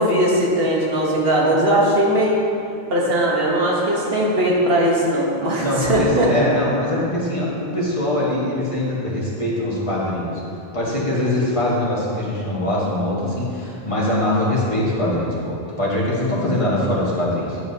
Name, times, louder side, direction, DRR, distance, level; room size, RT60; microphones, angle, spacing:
voice 1, 0.0-2.4 2.9-6.3, right 1 dB, 70° right, -3 dB, 1.4 m, -19 dB
voice 2, 5.6-10.4 10.7-17.6, left 1 dB, 30° left, -7 dB, 1.5 m, -22 dB
9.6 x 7.3 x 2.8 m, 2.7 s
omnidirectional pair, 1.0 m